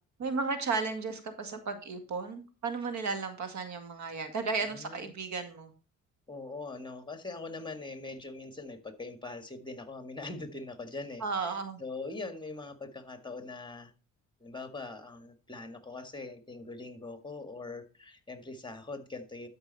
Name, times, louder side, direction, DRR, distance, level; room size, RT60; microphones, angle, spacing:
voice 1, 0.2-5.7 11.2-11.8, right 4 dB, 70° right, 8 dB, 2.1 m, -34 dB
voice 2, 4.6-5.1 6.3-13.9 14.4-19.5, left 3 dB, 15° left, 9 dB, 1.8 m, -42 dB
12.5 x 5.4 x 4.1 m, 0.33 s
cardioid pair, 90°, 30 cm